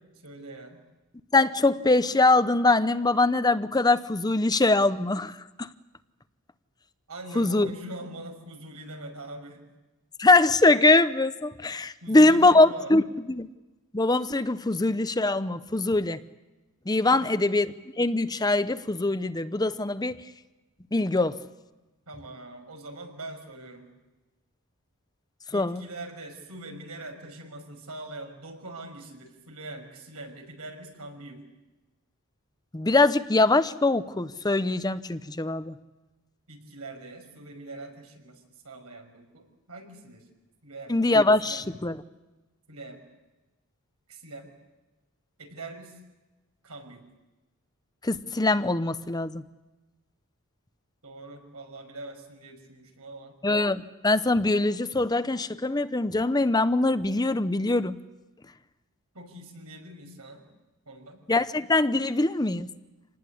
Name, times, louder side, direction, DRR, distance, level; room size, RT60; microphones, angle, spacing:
voice 1, 0.2-0.8 7.1-9.6 12.0-12.9 17.1-17.3 22.1-23.9 25.5-31.4 36.5-40.2 40.6-41.0 41.4-41.6 42.7-43.0 44.1-44.5 45.4-46.0 46.6-47.0 51.0-53.3 59.1-60.4 60.9-61.3, right 2 dB, 85° right, 4 dB, 6.0 m, -42 dB
voice 2, 1.3-5.7 7.4-7.7 10.2-13.0 13.3-13.5 13.9-16.2 16.9-17.7 18.0-20.2 20.9-21.4 25.5-25.8 32.7-35.7 40.9-42.0 48.0-49.4 53.4-58.0 61.3-62.7, left 2 dB, 20° left, 12 dB, 0.7 m, -23 dB
27.5 x 19.5 x 8.5 m, 1.1 s
head